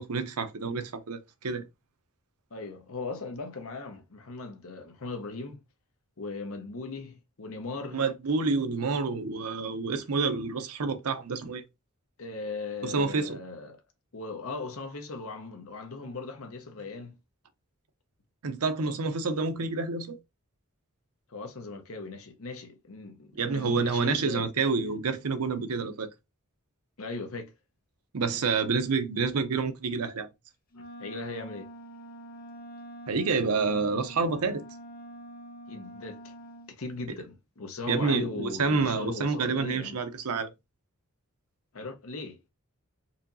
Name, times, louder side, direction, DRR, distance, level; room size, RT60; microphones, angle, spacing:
voice 1, 0.0-1.6 7.9-11.6 12.8-13.4 18.4-20.2 23.3-26.1 28.1-30.3 33.1-34.6 37.9-40.5, right 4 dB, 85° right, 0.7 m, -28 dB
voice 2, 2.5-5.6 6.2-8.0 12.2-13.8 14.1-17.2 21.3-24.5 27.0-27.5 30.8-31.7 35.7-36.3 36.8-40.0 41.7-42.4, left 3 dB, 65° left, 0.9 m, -38 dB
Wind instrument woodwind instrument, 30.7-36.8, right 1 dB, 40° left, 0.6 m, -45 dB
4.2 x 2.7 x 2.6 m
head